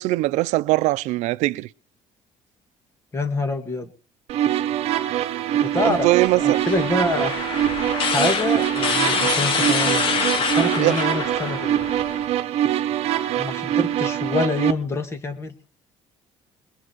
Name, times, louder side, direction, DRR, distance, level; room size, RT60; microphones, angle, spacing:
voice 1, 0.0-1.7 5.8-6.6 10.7-11.0, right 19 dB, 85° right, 0.6 m, -21 dB
voice 2, 3.1-3.9 5.7-6.1 6.3-7.5 8.1-11.8 13.4-15.5, left 2 dB, 20° left, 2.2 m, -26 dB
sound 1, 4.3-14.7, right 11 dB, 60° right, 1.1 m, -24 dB
sound 2, 5.7-12.2, left 5 dB, 45° left, 2.7 m, -26 dB
21.0 x 7.7 x 6.2 m
cardioid pair, 160°, 12 cm